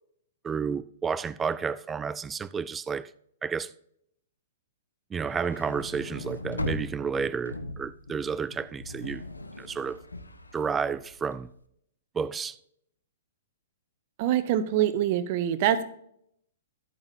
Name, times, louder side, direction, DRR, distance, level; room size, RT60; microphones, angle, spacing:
voice 1, 0.4-3.1 3.4-3.7 5.1-9.2 9.6-10.0 10.5-11.5 12.1-12.6, right 6 dB, 15° right, 0.3 m, -31 dB
sound 1, 5.2-11.5, left 2 dB, 80° left, 0.9 m, -39 dB
voice 2, 14.2-15.8, right 11 dB, 40° right, 0.8 m, -24 dB
13.0 x 8.8 x 2.6 m
figure-of-eight pair, 110°, 0 cm